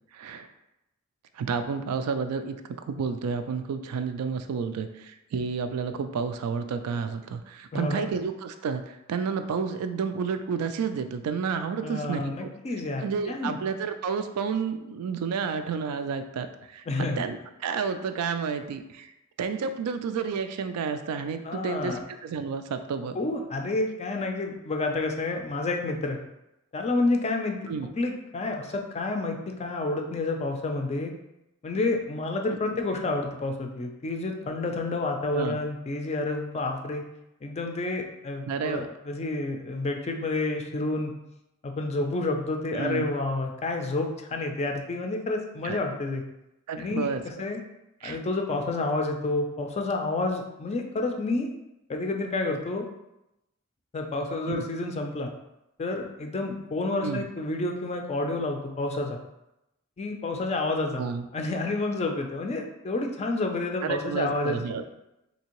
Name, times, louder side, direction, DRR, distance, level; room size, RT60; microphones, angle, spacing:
voice 1, 0.1-0.5 1.3-2.6 2.9-12.5 13.0-19.1 19.4-23.2 27.7-27.9 35.3-35.6 38.5-38.9 42.7-43.1 45.6-45.8 46.7-47.2 48.0-48.2 54.4-54.7 57.0-57.2 61.0-61.3 63.8-64.8, right 5 dB, 85° right, 8 dB, 0.3 m, -31 dB
voice 2, 7.7-8.0 11.8-13.6 16.9-17.2 21.4-22.0 23.2-26.2 26.7-27.6 28.0-31.1 31.6-37.0 37.4-41.1 41.6-46.2 46.7-47.1 47.4-47.6 48.0-51.5 51.9-52.9 53.9-55.3 55.8-59.2 60.0-61.0 61.3-64.6, left 2 dB, 30° left, 4 dB, 0.3 m, -29 dB
3.4 x 2.8 x 2.9 m, 0.91 s
head